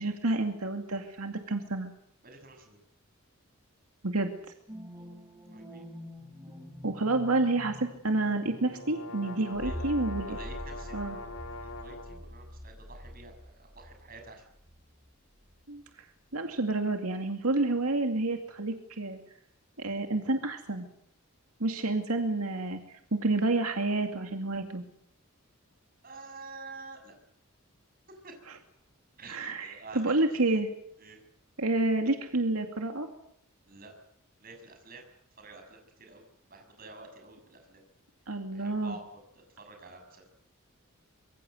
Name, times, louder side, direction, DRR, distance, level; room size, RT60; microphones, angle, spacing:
voice 1, 0.0-1.9 4.0-4.3 6.8-10.4 10.9-11.2 15.7-16.1 16.3-19.2 19.8-20.9 21.6-24.8 28.5-28.6 29.3-30.7 31.6-33.1 38.3-39.0, right 2 dB, 85° right, 5 dB, 2.4 m, -29 dB
voice 2, 2.2-2.8 4.9-5.1 5.5-5.8 9.6-14.4 26.0-27.1 28.1-28.6 29.2-30.1 30.4-30.5 31.0-31.2 33.7-33.9 34.4-35.0 35.4-36.2 36.5-37.8 38.5-39.0 39.6-40.3, right 3 dB, 40° right, 4 dB, 6.9 m, -49 dB
sound 1, 4.7-15.1 15.5-15.6, equal, 15° right, 3.5 m, -45 dB
sound 2, 8.3-12.2, left 2 dB, 75° left, 3.9 m, -42 dB
25.0 x 23.0 x 8.0 m, 0.73 s
head